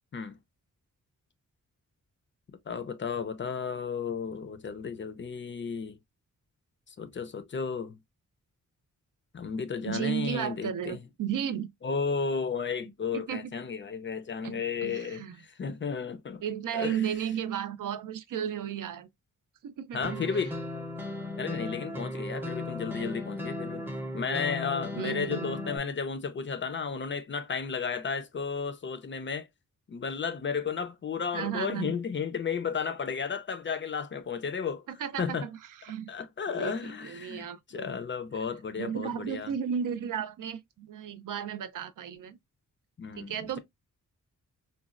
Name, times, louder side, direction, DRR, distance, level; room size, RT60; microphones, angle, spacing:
voice 1, 2.7-6.0 7.0-8.0 9.3-11.0 11.8-16.4 16.7-17.0 19.9-20.6 21.4-23.8 24.1-29.5 29.9-34.8 35.2-35.5 36.1-39.6 43.0-43.6, left 5 dB, 35° left, 0.4 m, -33 dB
voice 2, 9.9-11.7 13.1-13.5 14.4-15.4 16.4-19.1 19.6-20.3 21.6-21.7 22.9-23.2 25.0-25.6 31.3-31.9 34.9-35.5 35.8-36.1 36.6-38.0 38.8-42.4 43.2-43.6, right 8 dB, 75° right, 0.5 m, -34 dB
sound 1, 20.0-25.8, left 2 dB, 5° right, 0.6 m, -36 dB
3.9 x 2.2 x 2.3 m
wide cardioid pair, 140°, 32 cm